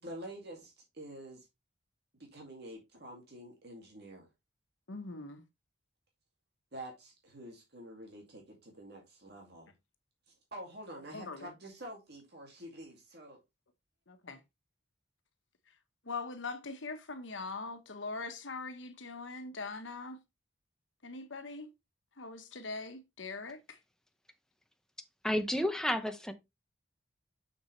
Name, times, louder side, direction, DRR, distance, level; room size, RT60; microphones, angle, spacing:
voice 1, 0.0-1.5 2.3-4.3 6.7-9.7 10.5-13.4, right 1 dB, 60° right, 2.3 m, -47 dB
voice 2, 4.9-5.4 11.1-11.5 14.1-14.4 16.0-20.2 21.0-21.7 22.2-23.8, left 3 dB, 80° left, 1.2 m, -42 dB
voice 3, 25.2-26.3, left 1 dB, 5° left, 0.8 m, -31 dB
6.8 x 6.6 x 3.2 m
head